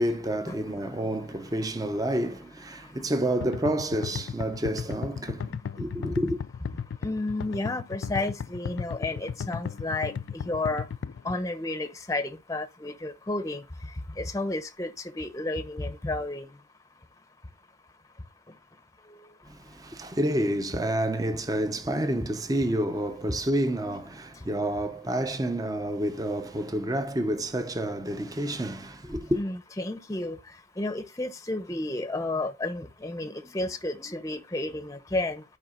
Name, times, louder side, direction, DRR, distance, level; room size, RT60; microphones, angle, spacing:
voice 1, 0.0-6.4 19.5-29.4, right 1 dB, 20° right, 0.6 m, -29 dB
sound 1, 3.4-11.4, left 7 dB, 85° left, 0.3 m, -35 dB
voice 2, 7.0-10.1 10.4-10.9 11.2-13.6 14.2-16.5 29.4-30.4 30.8-35.4, left 2 dB, 20° left, 0.7 m, -31 dB
13.5 x 4.8 x 2.4 m
head